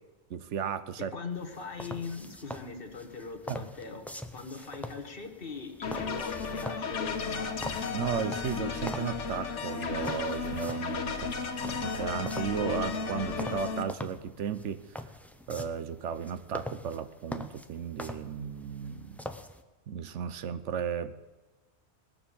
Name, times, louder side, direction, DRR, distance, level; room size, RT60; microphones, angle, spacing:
voice 1, 0.3-1.1 3.5-3.6 7.9-11.4 11.8-14.9 15.5-19.2 19.9-21.2, right 8 dB, 85° right, 13 dB, 1.1 m, -34 dB
voice 2, 1.1-4.1 4.3-7.6, left 4 dB, 50° left, 5 dB, 1.5 m, -41 dB
sound 1, 1.3-19.6, left 1 dB, ahead, 0.4 m, -44 dB
sound 2, 5.8-13.8, left 5 dB, 85° left, 1.4 m, -34 dB
19.0 x 7.1 x 7.0 m, 1.2 s
omnidirectional pair, 1.2 m